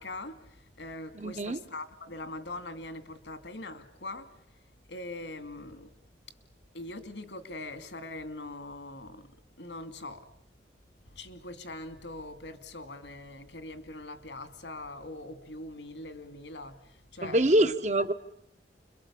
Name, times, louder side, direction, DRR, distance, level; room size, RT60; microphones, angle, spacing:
voice 1, 0.0-4.4 4.9-5.9 6.7-10.3 11.1-17.8, left 2 dB, 85° left, 2.5 m, -42 dB
voice 2, 1.1-1.6 17.2-18.1, right 1 dB, 40° right, 1.1 m, -25 dB
30.0 x 23.5 x 8.5 m
head